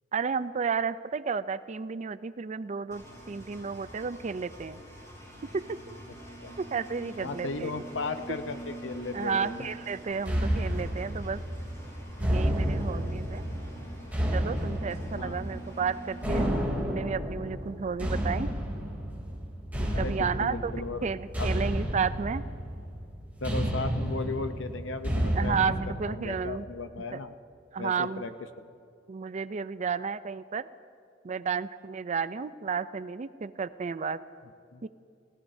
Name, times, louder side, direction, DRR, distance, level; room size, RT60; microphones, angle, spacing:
voice 1, 0.1-4.8 5.9-6.0 6.6-7.7 9.1-11.4 12.2-13.4 14.3-16.6 16.8-18.5 19.7-20.7 21.0-22.4 25.4-26.7 27.1-27.2 27.7-28.2 29.1-30.7 31.2-34.2 34.8-34.9, right 5 dB, 40° right, 14 dB, 0.4 m, -32 dB
Engine, 2.9-16.5, right 1 dB, 15° left, 5.3 m, -45 dB
voice 2, 7.2-9.7 15.2-15.6 19.9-21.1 21.4-21.5 23.4-25.5 26.0-27.3 27.8-28.3 28.6-28.7 34.7-34.8, left 3 dB, 80° left, 9 dB, 0.7 m, -36 dB
sound 1, 10.3-25.9, equal, 10° right, 3.1 m, -31 dB
30.0 x 17.5 x 2.7 m, 2.4 s
head